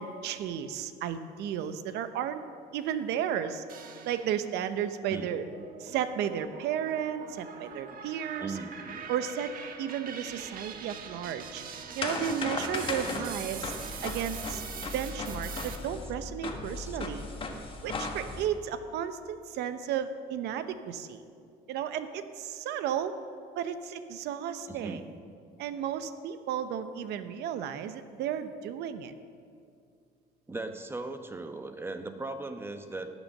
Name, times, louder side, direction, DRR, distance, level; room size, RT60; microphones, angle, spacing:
voice 1, 0.0-2.4 2.7-3.6 4.0-5.4 5.8-8.6 9.1-9.5 9.8-11.6 11.9-13.7 14.0-14.6 14.9-17.2 17.8-21.2 21.7-23.2 23.6-25.0 25.6-29.1, right 9 dB, 80° right, 11 dB, 0.8 m, -33 dB
sound 1, 3.7-4.6 5.0-15.8, right 6 dB, 60° right, 1.2 m, -43 dB
voice 2, 8.4-9.1 13.2-13.4 16.9-17.0 24.7-25.0 30.5-33.1, right 3 dB, 15° right, 7 dB, 0.9 m, -38 dB
sound 2, 10.4-18.5, left 3 dB, 30° left, 1.4 m, -37 dB
16.5 x 6.3 x 6.5 m, 2.4 s
cardioid pair, 110°, 17 cm